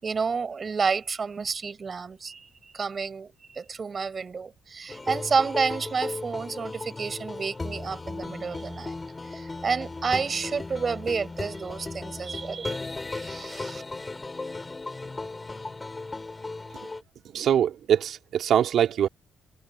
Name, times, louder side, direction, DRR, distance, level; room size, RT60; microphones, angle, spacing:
voice 1, 0.0-2.5 2.7-8.9 9.3-12.8 13.1-13.8, right 5 dB, 35° right, 4.2 m, -30 dB
sound 1, 4.9-17.0, left 3 dB, 20° left, 5.6 m, -36 dB
voice 2, 17.3-19.1, right 9 dB, 70° right, 2.5 m, -23 dB
cardioid pair, 115°, 0 cm